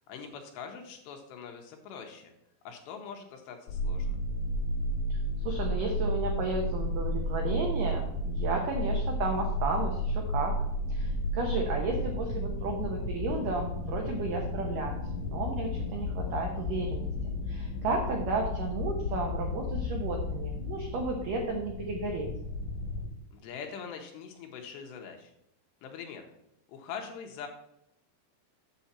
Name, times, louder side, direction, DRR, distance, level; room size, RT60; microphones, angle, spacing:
voice 1, 0.1-2.3 2.6-4.2 23.3-25.3 25.8-26.3 26.7-27.5, left 6 dB, 80° left, 3 dB, 2.9 m, -43 dB
sound 1, 3.7-23.1, left 1 dB, 60° left, 2.4 m, -33 dB
voice 2, 5.4-10.6 10.9-17.1 17.5-22.3, right 3 dB, 85° right, 1 dB, 1.9 m, -33 dB
8.2 x 7.0 x 4.2 m, 0.83 s
omnidirectional pair, 5.4 m